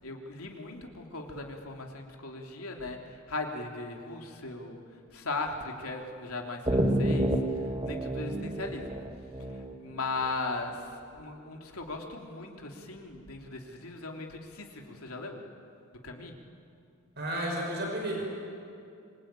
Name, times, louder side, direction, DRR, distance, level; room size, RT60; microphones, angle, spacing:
voice 1, 0.0-3.0 3.3-4.8 5.1-7.3 7.8-9.0 9.8-10.7 11.2-15.4 16.0-16.3, left 3 dB, 85° left, 2 dB, 3.2 m, -38 dB
sound 1, 6.7-10.2, right 1 dB, 25° right, 1.7 m, -29 dB
voice 2, 17.2-18.2, right 1 dB, 50° right, 0 dB, 6.0 m, -32 dB
25.5 x 23.5 x 9.0 m, 2.5 s
head